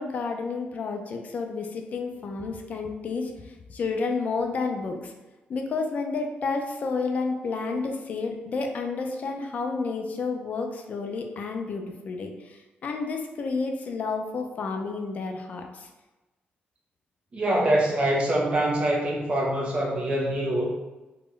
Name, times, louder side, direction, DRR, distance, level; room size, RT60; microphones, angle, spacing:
voice 1, 0.0-3.3 3.7-5.1 5.5-15.9, left 4 dB, 45° left, 3 dB, 0.3 m, -30 dB
voice 2, 17.3-20.6, right 1 dB, 30° right, -2 dB, 0.6 m, -24 dB
2.1 x 2.0 x 3.7 m, 1.1 s
wide cardioid pair, 170°, 4 cm